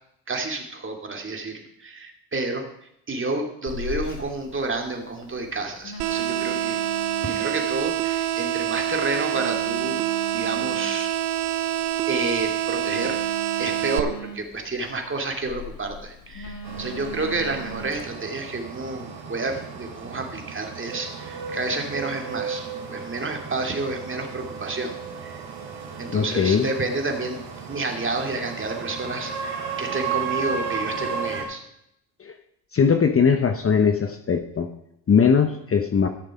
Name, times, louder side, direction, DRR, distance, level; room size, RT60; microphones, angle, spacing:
voice 1, 0.3-2.7 3.1-6.8 7.2-10.0 10.3-11.1 12.1-13.2 13.6-25.0 25.2-25.4 26.0-27.4 27.7-31.6, right 3 dB, 25° right, 3 dB, 2.4 m, -30 dB
Telephone, 3.7-18.0, right 1 dB, 45° left, 2.0 m, -40 dB
sound 1, 6.0-14.0, right 12 dB, 80° right, 0.8 m, -26 dB
sound 2, 16.6-31.4, right 6 dB, 55° right, 3.8 m, -34 dB
voice 2, 26.1-26.7 32.2-32.3 32.7-34.7 35.1-36.1, left 6 dB, 30° left, 6 dB, 1.0 m, -20 dB
13.5 x 6.6 x 5.2 m, 0.77 s
hypercardioid pair, 65°, 49 cm